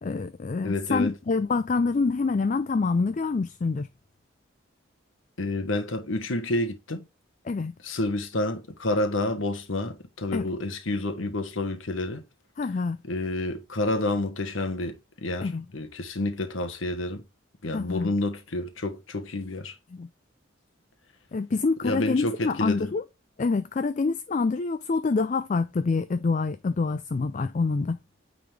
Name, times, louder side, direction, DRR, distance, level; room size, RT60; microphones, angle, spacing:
voice 1, 0.0-3.9 7.4-7.7 10.3-10.5 12.6-13.0 15.4-15.7 17.7-18.1 19.9-20.1 21.3-23.0 23.4-28.0, left 4 dB, 40° left, 0.4 m, -26 dB
voice 2, 0.6-1.1 5.4-7.0 7.8-12.2 13.1-15.0 15.2-17.2 17.6-19.7 21.8-22.9, left 2 dB, 90° left, 1.3 m, -29 dB
9.3 x 3.9 x 3.4 m
head